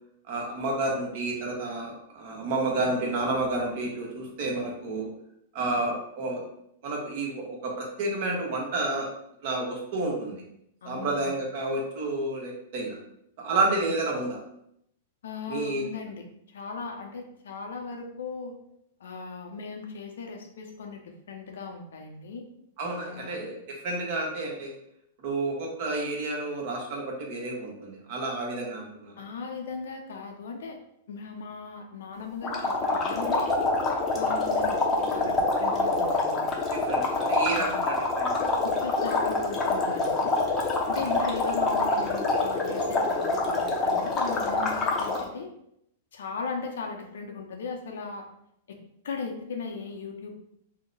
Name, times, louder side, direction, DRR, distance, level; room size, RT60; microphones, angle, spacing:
voice 1, 0.3-5.1 5.5-6.4 6.8-9.1 9.4-10.4 10.8-13.0 13.4-14.4 15.5-15.8 22.8-23.6 23.8-24.7 25.2-29.1 36.7-38.6 41.0-41.1, right 2 dB, 55° right, -1 dB, 1.0 m, -30 dB
voice 2, 10.8-11.3 13.6-13.8 15.2-16.2 16.5-18.5 19.0-21.0 21.3-22.4 23.1-23.4 29.2-30.8 31.1-33.5 34.1-36.5 37.5-37.8 38.6-40.4 40.9-45.5 46.1-48.2 48.7-48.8 49.0-50.3, left 5 dB, 80° left, 2 dB, 0.6 m, -37 dB
sound 1, 32.4-45.3, left 2 dB, 20° left, 0.6 m, -26 dB
2.8 x 2.1 x 3.9 m, 0.74 s
hypercardioid pair, 135°, 0 cm